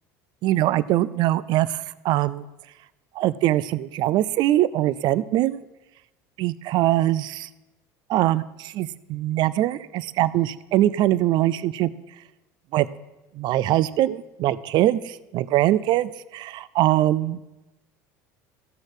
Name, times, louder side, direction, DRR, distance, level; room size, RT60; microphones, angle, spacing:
voice 1, 0.4-2.4 3.2-5.6 6.4-7.5 8.1-11.9 12.7-12.9 13.4-17.4, right 14 dB, 55° right, 19 dB, 0.4 m, -22 dB
14.0 x 6.3 x 4.8 m, 1.0 s
supercardioid pair, 95°, 9 cm